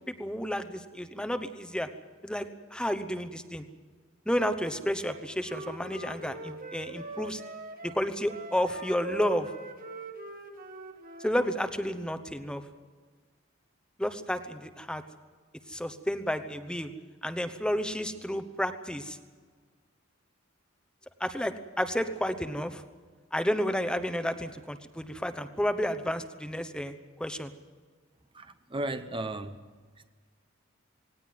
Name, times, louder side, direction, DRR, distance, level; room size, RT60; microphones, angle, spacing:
voice 1, 0.0-1.9 2.2-3.6 4.3-7.4 7.8-9.5 11.2-12.6 14.0-15.0 15.7-16.9 17.2-19.2 21.2-22.8 23.3-27.5, equal, 5° left, 1.0 m, -31 dB
Wind instrument woodwind instrument, 5.1-11.4, right 2 dB, 45° right, 2.2 m, -42 dB
voice 2, 28.3-29.6, right 2 dB, 25° right, 0.9 m, -35 dB
19.0 x 18.0 x 9.4 m
head